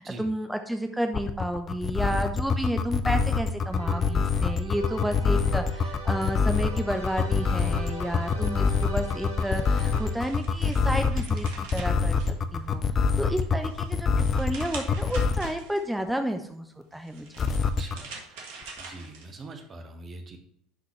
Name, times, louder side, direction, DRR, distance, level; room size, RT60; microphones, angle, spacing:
voice 1, 0.0-14.1 14.4-17.3, equal, 5° right, 6 dB, 0.7 m, -31 dB
sound 1, 1.1-15.5 17.4-18.0, left 5 dB, 35° left, 0.6 m, -25 dB
sound 2, 3.7-10.5, left 1 dB, 90° right, 2.1 m, -41 dB
sound 3, 9.5-12.9 13.3-16.0 16.9-19.6, right 4 dB, 65° right, 1.5 m, -45 dB
voice 2, 17.8-18.1 18.8-20.4, right 2 dB, 35° right, 6 dB, 1.1 m, -42 dB
11.0 x 4.0 x 3.2 m, 0.70 s
hypercardioid pair, 70°, 0 cm